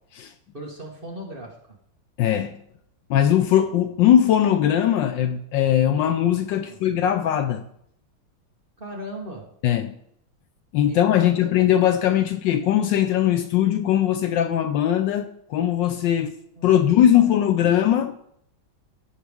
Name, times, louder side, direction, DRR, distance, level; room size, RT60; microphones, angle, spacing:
voice 1, 0.5-1.6 6.6-6.8 8.8-9.5 10.9-11.3 16.6-17.3, equal, 30° right, 1.4 m, -38 dB
voice 2, 2.2-2.6 3.1-7.6 9.6-9.9 10.7-16.3 16.6-18.2, left 10 dB, 75° left, 1.2 m, -20 dB
15.5 x 5.8 x 3.5 m
omnidirectional pair, 2.2 m